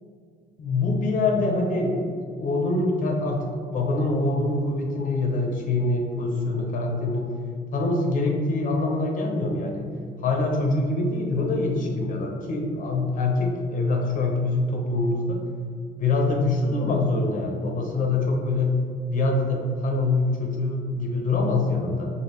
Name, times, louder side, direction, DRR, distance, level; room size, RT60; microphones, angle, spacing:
voice 1, 0.6-2.1 2.4-3.5 3.7-7.3 7.7-9.9 10.2-15.4 16.0-18.8 19.1-22.1, left 2 dB, 50° left, 0 dB, 0.8 m, -24 dB
5.1 x 2.4 x 3.1 m, 2.2 s
cardioid pair, 110°, 17 cm